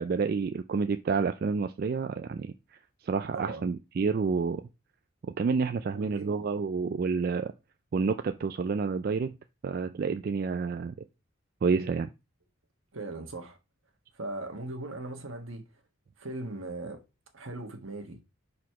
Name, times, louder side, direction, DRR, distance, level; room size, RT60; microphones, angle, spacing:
voice 1, 0.0-2.5 3.0-4.6 5.4-7.5 7.9-9.3 9.6-10.9 11.6-12.1, right 5 dB, 45° right, 0.3 m, -29 dB
voice 2, 3.3-3.7 5.9-6.5 12.9-13.6 14.1-15.6 16.2-17.0 17.3-18.2, right 2 dB, 75° right, 1.4 m, -39 dB
4.6 x 4.2 x 5.6 m
head